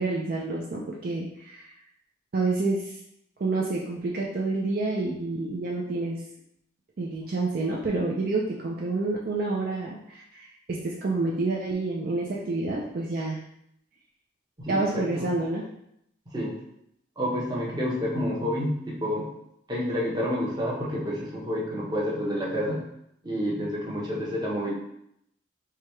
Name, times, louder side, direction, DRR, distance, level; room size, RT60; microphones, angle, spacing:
voice 1, 0.0-1.7 2.3-3.0 3.4-6.2 7.0-13.4 14.7-15.6, right 3 dB, 50° right, -3 dB, 0.4 m, -28 dB
voice 2, 14.6-15.3 16.3-16.5 17.2-19.3 19.7-22.8 23.2-24.7, equal, 20° right, -5 dB, 0.9 m, -29 dB
4.8 x 2.3 x 3.1 m, 0.75 s
head